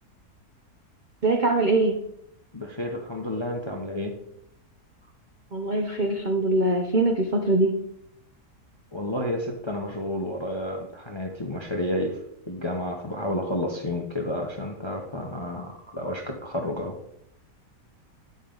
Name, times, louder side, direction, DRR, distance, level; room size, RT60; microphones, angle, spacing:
voice 1, 1.2-2.0 5.5-7.7, right 2 dB, 60° right, 3 dB, 0.4 m, -22 dB
voice 2, 2.5-4.1 8.9-12.2 12.5-17.0, left 1 dB, 30° left, 2 dB, 0.5 m, -30 dB
8.6 x 5.3 x 3.8 m, 0.74 s
omnidirectional pair, 1.7 m